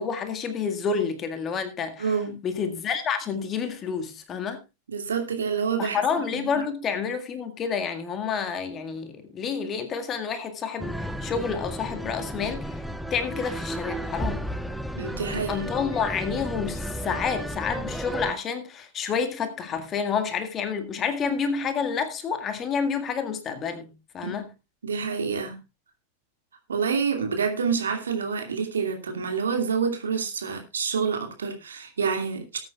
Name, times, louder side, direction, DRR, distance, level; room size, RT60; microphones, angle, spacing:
voice 1, 0.0-2.2 2.4-4.6 5.8-12.8 13.1-14.4 15.3-24.4, left 6 dB, 25° left, 1.9 m, -29 dB
voice 2, 2.0-2.4 4.9-6.0 6.3-6.6 14.9-15.7 24.2-24.4 24.8-25.6 26.7-32.6, right 6 dB, 70° right, 2.6 m, -27 dB
sound 1, 10.8-18.3, equal, ahead, 0.7 m, -33 dB
19.0 x 8.9 x 2.4 m
figure-of-eight pair, 90°, 0 cm